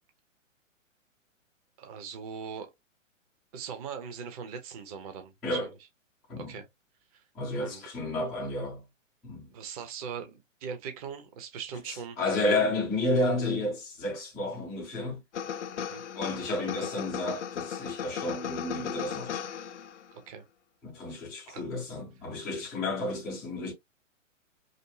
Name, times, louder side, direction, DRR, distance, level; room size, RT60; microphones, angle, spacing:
voice 1, 1.8-2.7 3.5-5.6 6.4-6.7 7.1-7.2 7.6-7.9 9.5-12.2 15.8-16.0 20.3-20.4 21.5-21.6, right 6 dB, 30° right, 0.9 m, -40 dB
voice 2, 7.3-8.8 9.2-9.5 11.9-15.2 16.1-19.4 20.8-23.7, left 2 dB, ahead, 0.4 m, -31 dB
sound 1, 15.3-20.1, left 8 dB, 65° left, 0.5 m, -36 dB
5.3 x 2.1 x 2.7 m
figure-of-eight pair, 120°, 39 cm